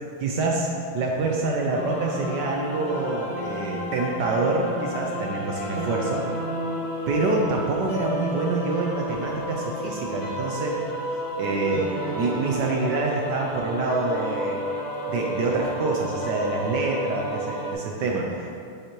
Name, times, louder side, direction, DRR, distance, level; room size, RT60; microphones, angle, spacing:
voice 1, 0.2-0.7 0.9-6.2 7.1-10.9 11.4-14.6 15.1-18.5, right 3 dB, 70° right, -1 dB, 1.0 m, -26 dB
sound 1, 1.7-17.7, equal, 70° left, 2.2 m, -32 dB
8.0 x 5.6 x 3.0 m, 2.4 s
omnidirectional pair, 2.3 m